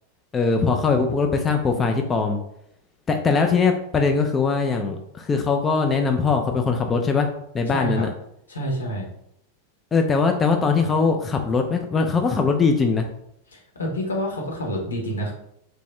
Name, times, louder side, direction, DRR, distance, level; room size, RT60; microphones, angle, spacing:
voice 1, 0.3-2.4 3.1-7.3 7.5-8.1 9.9-13.1, left 4 dB, 20° left, 3 dB, 0.3 m, -21 dB
voice 2, 7.7-8.1 8.5-9.1 13.5-15.3, equal, 70° left, 0 dB, 0.9 m, -28 dB
3.3 x 2.6 x 3.1 m, 0.76 s
figure-of-eight pair, 90°, 0 cm